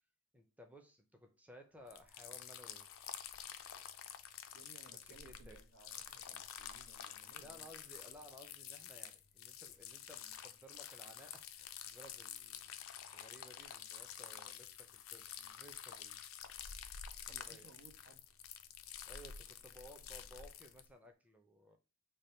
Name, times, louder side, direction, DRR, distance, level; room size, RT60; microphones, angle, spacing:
voice 1, 0.3-2.9 4.9-5.6 7.2-16.4 17.3-17.7 19.0-21.8, equal, 5° right, 0.6 m, -58 dB
sound 1, 1.9-20.9, left 9 dB, 75° left, 0.4 m, -50 dB
voice 2, 4.5-7.7 17.3-18.2, right 4 dB, 75° right, 1.1 m, -62 dB
3.4 x 2.2 x 4.3 m
head